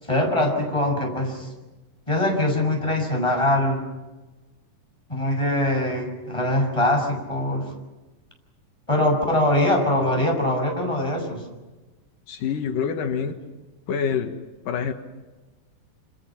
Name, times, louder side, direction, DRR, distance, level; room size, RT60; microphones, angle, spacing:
voice 1, 0.0-1.5 2.1-3.8 5.1-7.7 8.9-11.4, left 1 dB, 10° left, 2 dB, 6.2 m, -22 dB
voice 2, 12.3-13.4 13.9-14.4 14.7-14.9, left 7 dB, 90° left, 6 dB, 3.3 m, -26 dB
27.0 x 26.5 x 5.9 m, 1.2 s
omnidirectional pair, 3.7 m